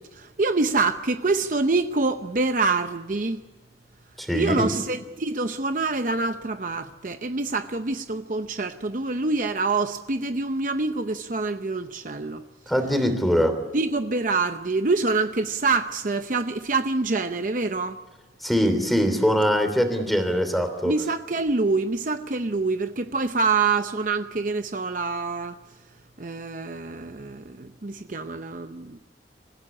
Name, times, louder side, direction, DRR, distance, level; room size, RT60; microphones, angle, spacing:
voice 1, 0.1-3.4 4.3-12.4 13.7-18.0 20.8-25.6 26.2-29.0, right 3 dB, 50° right, 0.7 m, -26 dB
voice 2, 4.2-4.7 12.7-13.6 18.4-20.9, equal, ahead, 3.1 m, -22 dB
26.0 x 16.0 x 9.9 m
head